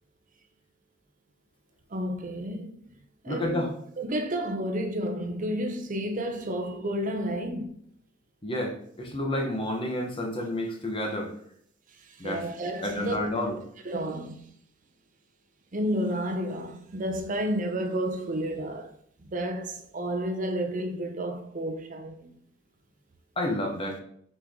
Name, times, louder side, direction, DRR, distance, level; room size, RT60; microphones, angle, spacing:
voice 1, 1.9-2.8 3.2-3.7 4.0-7.8 12.0-13.2 13.5-13.6 13.8-14.4 15.7-18.9 19.2-22.4, right 1 dB, 40° right, 0.7 m, -31 dB
voice 2, 3.3-3.7 8.4-11.3 12.2-12.4 12.8-13.5 23.4-24.0, left 1 dB, 30° left, 1.2 m, -30 dB
6.6 x 4.7 x 3.7 m
head